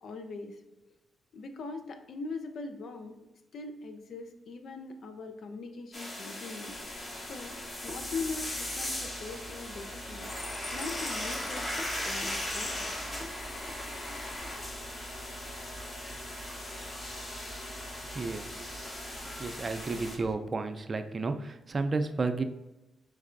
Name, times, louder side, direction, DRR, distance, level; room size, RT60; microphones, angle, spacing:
voice 1, 0.0-0.6 0.9-1.0 1.3-3.2 3.5-6.8 7.2-10.3 10.7-11.7 12.0-12.9, left 3 dB, 70° left, 7 dB, 0.5 m, -41 dB
sound 1, 5.9-20.2, left 1 dB, 40° left, 1.2 m, -38 dB
sound 2, 6.7-20.4, right 1 dB, 10° left, 0.7 m, -48 dB
voice 2, 18.1-18.7 19.4-22.4, right 3 dB, 45° right, 8 dB, 0.4 m, -32 dB
5.3 x 3.2 x 2.5 m, 1.0 s
supercardioid pair, 45°, 0 cm